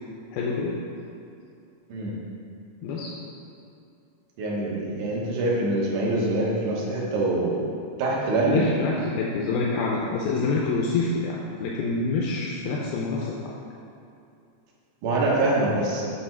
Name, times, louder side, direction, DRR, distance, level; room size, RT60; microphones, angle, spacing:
voice 1, 0.3-0.8 2.8-3.1 8.4-13.5, left 3 dB, 90° left, -3 dB, 2.5 m, -26 dB
voice 2, 4.4-7.6 8.0-8.6 15.0-16.0, right 2 dB, 65° right, -4 dB, 2.4 m, -24 dB
7.6 x 4.1 x 4.5 m, 2.6 s
omnidirectional pair, 4.2 m